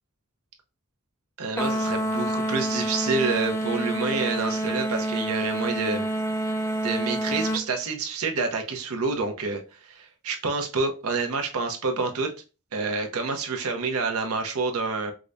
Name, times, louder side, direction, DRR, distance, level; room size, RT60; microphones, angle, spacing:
voice 1, 1.4-6.0 6.8-12.3 12.7-15.1, right 4 dB, 90° right, 0.7 m, -28 dB
sound 1, 1.6-7.7, right 1 dB, 10° left, 0.3 m, -27 dB
4.8 x 2.1 x 2.5 m
head